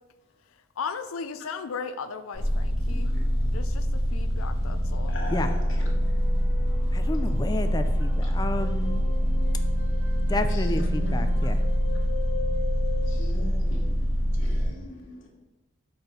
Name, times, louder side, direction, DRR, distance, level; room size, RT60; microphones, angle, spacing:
voice 1, 0.8-3.1 3.5-3.9 4.1-5.1, left 5 dB, 80° left, 0.5 m, -36 dB
sound 1, 2.3-14.6, equal, 65° right, 1.8 m, -25 dB
voice 2, 2.9-3.2 5.1-5.8 8.2-8.3 10.5-11.1 13.1-15.3, left 1 dB, 65° left, 1.4 m, -40 dB
sound 2, 4.5-13.2, left 3 dB, 5° right, 2.2 m, -40 dB
voice 3, 6.9-9.0 10.3-11.6, left 2 dB, 20° left, 0.4 m, -31 dB
6.1 x 4.3 x 5.1 m
head